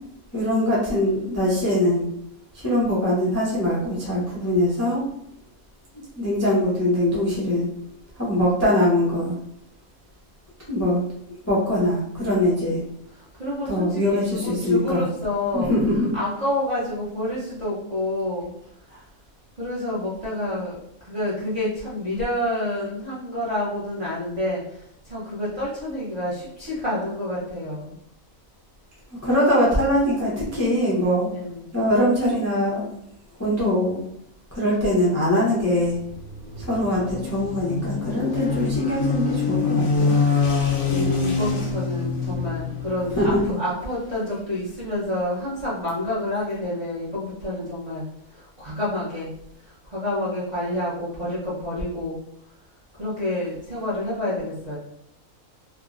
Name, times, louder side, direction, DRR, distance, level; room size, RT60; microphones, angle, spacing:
voice 1, 0.3-2.0 2.6-5.0 6.2-7.7 8.2-9.4 10.7-11.0 11.5-12.8 13.7-15.1 15.5-16.1 29.2-31.3 31.7-32.8 33.4-34.0 34.5-36.0 36.6-40.1 43.2-43.6, left 1 dB, 20° left, -7 dB, 0.4 m, -22 dB
voice 2, 13.1-15.7 16.1-18.5 19.6-20.8 21.0-27.9 31.3-31.7 40.1-40.3 40.9-48.0 48.3-49.3 49.6-52.1 53.0-54.8, left 1 dB, 35° right, -9 dB, 0.6 m, -28 dB
sound 1, 35.8-43.5, left 4 dB, 75° left, 1.1 m, -25 dB
3.4 x 2.0 x 2.4 m, 0.75 s
omnidirectional pair, 1.5 m